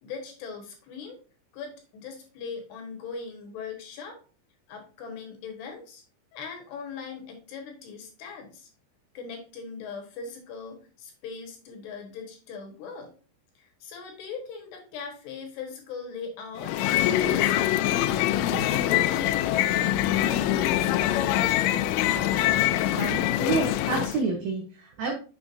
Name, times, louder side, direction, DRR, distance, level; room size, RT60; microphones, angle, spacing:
voice 1, 0.0-1.2 1.5-4.2 4.7-6.0 6.3-8.7 9.1-13.1 13.6-21.3, left 5 dB, 70° left, 3 dB, 3.1 m, -40 dB
sound 1, 16.6-24.2, left 13 dB, 90° left, 3.1 m, -24 dB
voice 2, 22.9-25.1, right 4 dB, 85° right, 2 dB, 2.0 m, -29 dB
7.1 x 6.9 x 2.6 m, 0.37 s
omnidirectional pair, 5.5 m